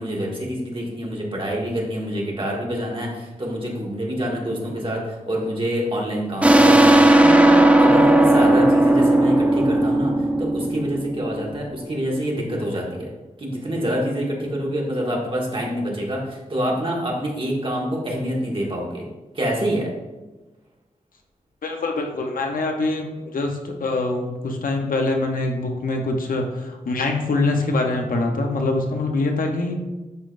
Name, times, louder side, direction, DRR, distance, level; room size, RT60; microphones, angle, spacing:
voice 1, 0.0-13.1 13.4-19.1 19.3-19.9, equal, 40° right, -3 dB, 1.8 m, -26 dB
sound 1, 6.4-11.7, right 1 dB, 10° right, 0.5 m, -16 dB
voice 2, 21.6-29.8, left 2 dB, 80° left, 3 dB, 0.9 m, -24 dB
11.0 x 4.0 x 2.6 m, 1.1 s
wide cardioid pair, 85°, 14 cm